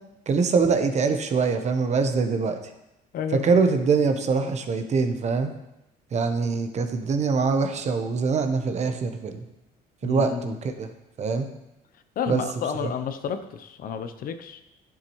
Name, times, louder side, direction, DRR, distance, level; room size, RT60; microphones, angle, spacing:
voice 1, 0.3-2.6 3.4-5.5 6.1-9.4 10.0-10.9 11.2-11.5 12.3-12.4 12.8-12.9, right 4 dB, 40° right, 7 dB, 0.9 m, -23 dB
voice 2, 3.1-3.4 10.0-10.6 12.2-14.6, left 7 dB, 60° left, 9 dB, 0.7 m, -31 dB
11.0 x 7.1 x 3.1 m, 0.91 s
cardioid pair, 110°, 17 cm